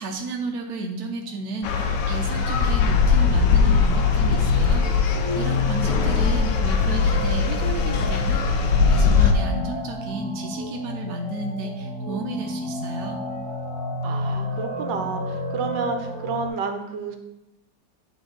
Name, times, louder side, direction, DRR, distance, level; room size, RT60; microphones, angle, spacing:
voice 1, 0.0-13.3, right 3 dB, 65° right, 1 dB, 1.1 m, -33 dB
sound 1, 1.6-9.3, left 5 dB, 80° left, 1.3 m, -20 dB
sound 2, 1.7-16.5, left 2 dB, 30° left, 0.6 m, -31 dB
voice 2, 14.0-17.2, right 5 dB, 85° right, 5 dB, 1.4 m, -30 dB
10.0 x 3.5 x 3.8 m, 0.95 s
omnidirectional pair, 1.9 m